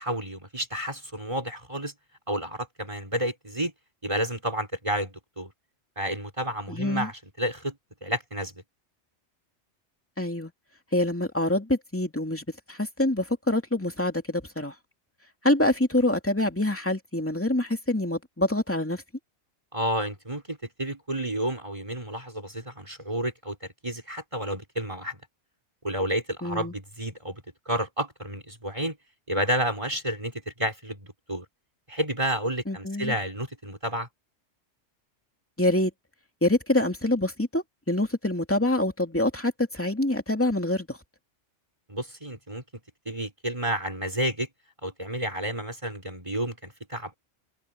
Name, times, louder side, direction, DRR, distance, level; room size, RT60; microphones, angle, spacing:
voice 1, 0.0-1.9 2.3-3.7 4.0-5.5 6.0-7.8 8.0-8.6 19.7-25.2 25.8-27.4 27.7-29.0 29.3-31.4 31.9-34.1 41.9-42.6 43.0-44.5 44.8-47.2, right 1 dB, 25° right, 5.0 m, -30 dB
voice 2, 6.7-7.1 10.2-10.5 10.9-14.7 15.4-19.0 26.4-26.7 32.7-33.1 35.6-35.9 36.4-41.0, left 1 dB, 10° left, 2.6 m, -26 dB
omnidirectional pair, 1.2 m